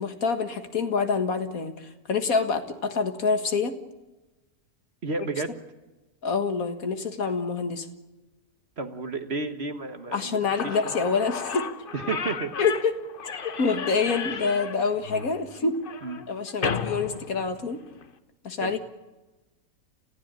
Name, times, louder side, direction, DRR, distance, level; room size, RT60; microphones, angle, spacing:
voice 1, 0.0-3.8 6.2-7.9 10.1-11.7 12.6-15.8 16.3-17.8 18.4-18.8, left 4 dB, 70° left, 8 dB, 2.1 m, -26 dB
voice 2, 5.0-5.6 8.8-10.4 10.6-10.9 11.9-12.5 16.0-16.2 18.6-18.7, right 3 dB, 45° right, 8 dB, 1.7 m, -32 dB
Slam / Squeak, 10.3-10.4 10.6-18.1, left 6 dB, 40° left, 1.1 m, -34 dB
28.0 x 15.5 x 9.0 m, 1.1 s
omnidirectional pair, 1.5 m